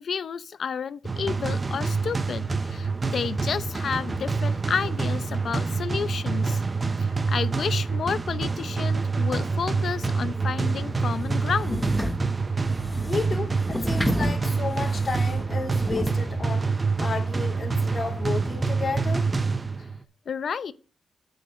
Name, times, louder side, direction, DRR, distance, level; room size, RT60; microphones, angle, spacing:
voice 1, 0.0-6.6 7.0-11.9 20.3-20.7, left 6 dB, 60° left, 0.6 m, -31 dB
sound 1, 1.0-20.0, right 4 dB, 30° right, 0.6 m, -26 dB
sound 2, 11.2-16.2, left 1 dB, 5° left, 0.8 m, -32 dB
voice 2, 13.0-19.3, left 4 dB, 35° left, 2.7 m, -32 dB
8.4 x 5.2 x 5.9 m
cardioid pair, 105°, 0 cm